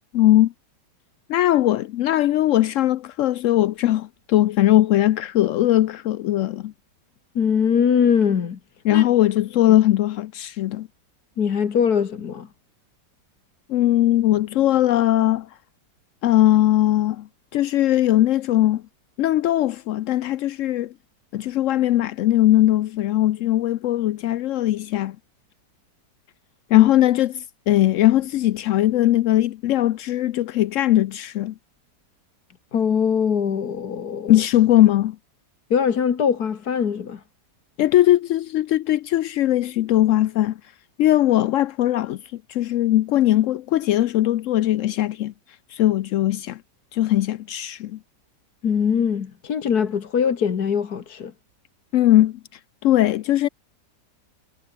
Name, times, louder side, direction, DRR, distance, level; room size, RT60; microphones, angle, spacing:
voice 1, 0.1-0.5 1.3-6.7 8.8-10.9 13.7-15.5 16.2-18.8 19.2-20.9 21.3-25.2 26.7-31.5 34.3-35.2 37.8-40.6 41.0-45.3 45.7-46.6 46.9-48.0 51.9-52.4 52.8-53.5, left 13 dB, 85° left, 0.7 m, -19 dB
voice 2, 7.4-8.6 8.9-9.0 11.4-12.5 26.7-26.9 32.7-34.4 35.7-37.2 48.6-51.3, left 7 dB, 60° left, 2.0 m, -22 dB
omnidirectional pair, 1.9 m